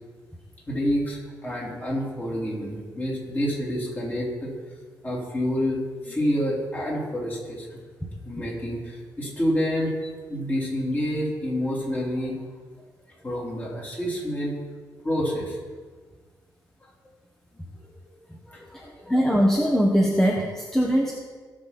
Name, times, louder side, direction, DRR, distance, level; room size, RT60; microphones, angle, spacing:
voice 1, 0.7-4.5 5.0-7.8 8.2-12.4 13.2-14.6 15.0-15.6 17.7-17.8 18.5-19.1, equal, 20° left, -5 dB, 3.9 m, -28 dB
voice 2, 19.1-21.1, equal, 5° left, -2 dB, 1.4 m, -21 dB
17.5 x 6.7 x 4.3 m, 1.5 s
cardioid pair, 110°, 8 cm